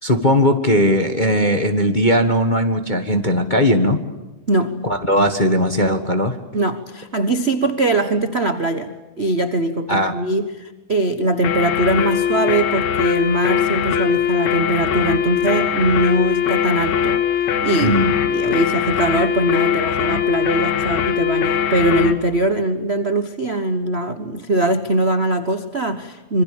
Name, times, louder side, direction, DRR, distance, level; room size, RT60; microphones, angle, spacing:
voice 1, 0.0-4.0 4.8-6.4 9.9-10.1 17.8-18.1, equal, 25° left, 6 dB, 1.0 m, -18 dB
voice 2, 4.5-4.9 6.5-17.2 17.6-26.4, right 2 dB, 70° right, 8 dB, 0.6 m, -21 dB
sound 1, 11.4-22.2, left 8 dB, 75° left, 3.0 m, -20 dB
26.5 x 24.0 x 8.7 m, 1.1 s
omnidirectional pair, 3.3 m